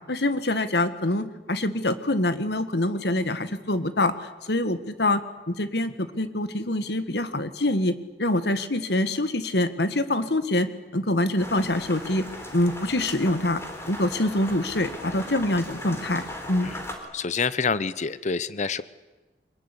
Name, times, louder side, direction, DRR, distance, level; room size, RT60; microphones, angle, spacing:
voice 1, 0.1-12.2 12.5-13.6 13.9-16.7, left 1 dB, 65° left, 11 dB, 1.7 m, -25 dB
sound 1, 11.4-17.0, left 1 dB, 15° left, 3.9 m, -38 dB
voice 2, 17.1-18.8, left 5 dB, 40° left, 16 dB, 0.8 m, -27 dB
24.0 x 20.5 x 10.0 m, 1.2 s
head